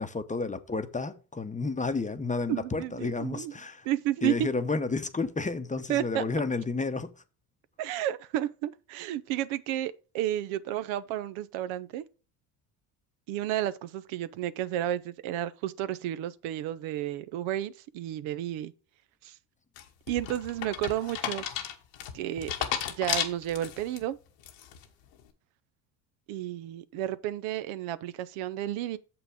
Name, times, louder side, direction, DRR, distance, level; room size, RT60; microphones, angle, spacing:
voice 1, 0.0-3.9 4.2-7.1, left 3 dB, 15° left, 0.8 m, -31 dB
voice 2, 2.5-3.5 3.9-4.5 5.9-6.2 7.8-12.0 13.3-18.7 19.2-19.3 20.1-21.4 22.1-22.5 23.0-24.2 26.3-29.0, right 12 dB, 75° right, 0.7 m, -32 dB
sound 1, 19.8-24.0 24.4-24.9, left 10 dB, 90° left, 1.3 m, -33 dB
6.9 x 5.8 x 4.9 m
supercardioid pair, 75°, 48 cm